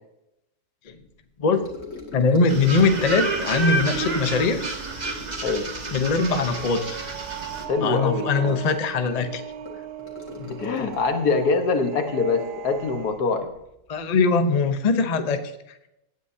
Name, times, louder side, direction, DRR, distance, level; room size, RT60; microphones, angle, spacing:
Gurgling / Sink (filling or washing) / Trickle dribble, 1.5-13.1 13.4-13.7 14.0-14.1, left 3 dB, 50° left, 2.5 m, -42 dB
voice 1, 2.1-4.6 5.9-7.0 7.8-9.4 13.9-15.4, left 4 dB, 35° left, 8 dB, 0.7 m, -21 dB
Hornbill flyby, 2.5-7.6, right 2 dB, 30° right, 1.3 m, -30 dB
sound 1, 2.7-13.2, right 9 dB, 80° right, 1.3 m, -38 dB
voice 2, 7.7-8.6 10.4-13.5, left 4 dB, 75° left, 7 dB, 1.7 m, -24 dB
17.5 x 9.2 x 2.8 m, 0.84 s
omnidirectional pair, 1.7 m